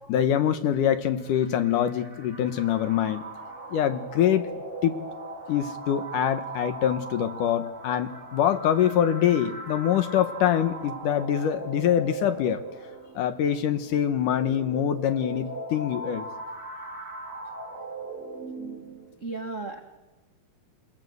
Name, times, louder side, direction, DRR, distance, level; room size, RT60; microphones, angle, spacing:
voice 1, 0.1-3.2 3.7-4.5 4.8-4.9 5.5-12.6 13.2-16.3, left 10 dB, 65° left, 9 dB, 2.4 m, -24 dB
sound 1, 1.2-19.1, right 2 dB, 20° right, 4.0 m, -39 dB
voice 2, 19.2-19.8, right 3 dB, 55° right, 3 dB, 0.8 m, -35 dB
29.0 x 20.5 x 8.0 m, 1.1 s
omnidirectional pair, 4.4 m